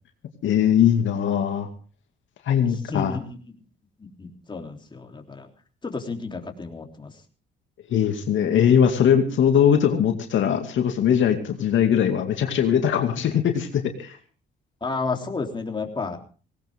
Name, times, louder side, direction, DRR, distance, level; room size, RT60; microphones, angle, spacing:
voice 1, 0.4-1.7 2.5-3.2 7.9-14.2, left 8 dB, 70° left, 5 dB, 2.3 m, -20 dB
voice 2, 2.9-3.4 4.0-5.5 5.8-7.1 14.8-16.2, left 4 dB, 25° left, 3 dB, 3.4 m, -31 dB
18.5 x 18.5 x 3.6 m, 0.38 s
cardioid pair, 90°, 20 cm